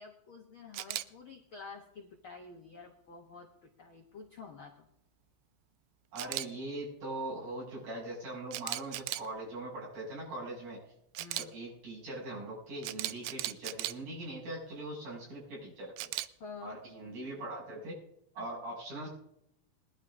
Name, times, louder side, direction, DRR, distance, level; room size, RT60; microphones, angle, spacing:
voice 1, 0.0-4.9 11.2-11.5 16.4-16.8 18.4-18.5, left 4 dB, 85° left, 2 dB, 1.1 m, -49 dB
Camera, 0.7-1.0 6.2-6.5 8.5-9.3 11.1-11.4 12.8-13.9 16.0-16.3, right 16 dB, 90° right, 2.6 m, -36 dB
voice 2, 6.1-10.8 11.4-16.1 16.6-18.0 18.3-19.1, right 2 dB, 55° right, -6 dB, 7.8 m, -41 dB
21.0 x 11.5 x 3.7 m, 0.75 s
omnidirectional pair, 4.3 m